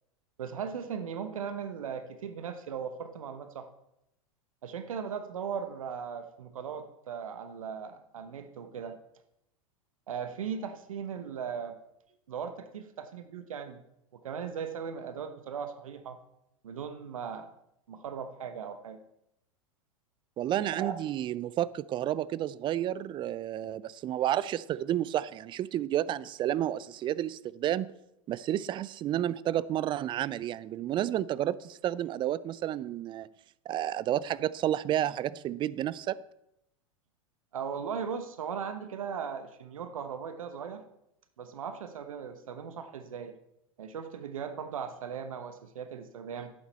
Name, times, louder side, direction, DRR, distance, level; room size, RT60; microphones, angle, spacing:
voice 1, 0.4-3.7 4.6-9.0 10.1-11.8 12.3-13.8 14.1-16.2 16.6-17.5 17.9-19.0 20.8-20.9 37.5-40.8 41.4-43.3 43.8-46.5, right 7 dB, 75° right, 9 dB, 1.0 m, -38 dB
voice 2, 20.4-27.9 28.3-33.3 33.7-36.2, right 12 dB, 30° right, 19 dB, 0.4 m, -31 dB
11.5 x 8.8 x 4.2 m, 0.81 s
hypercardioid pair, 95°, 18 cm